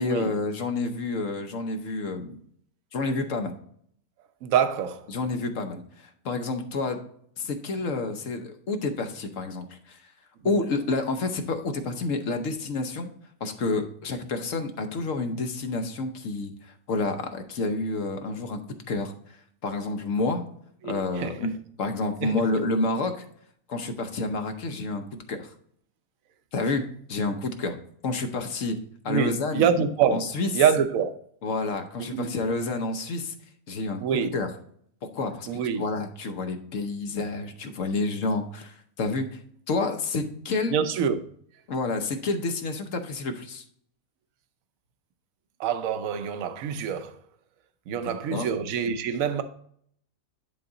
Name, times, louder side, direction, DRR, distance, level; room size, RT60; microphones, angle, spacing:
voice 1, 0.0-2.4 2.9-3.6 5.1-7.0 7.4-10.0 10.4-13.1 13.4-18.6 18.9-19.1 19.6-20.4 20.8-21.5 21.8-23.2 23.7-25.5 26.5-26.8 27.1-27.8 28.0-28.8 29.0-29.7 30.1-30.5 31.4-33.3 33.7-34.0 34.3-34.5 35.0-35.5 35.8-39.4 39.7-40.8 41.7-43.6 48.0-48.5, left 3 dB, 60° left, 1.2 m, -29 dB
voice 2, 4.4-5.0 10.4-10.5 20.8-21.4 22.2-22.5 29.1-30.2 30.5-31.1 32.0-32.3 34.0-34.3 35.5-35.8 40.7-41.2 45.6-47.1 47.9-49.4, right 7 dB, 65° right, 1.0 m, -25 dB
10.5 x 3.6 x 3.8 m
omnidirectional pair, 1.7 m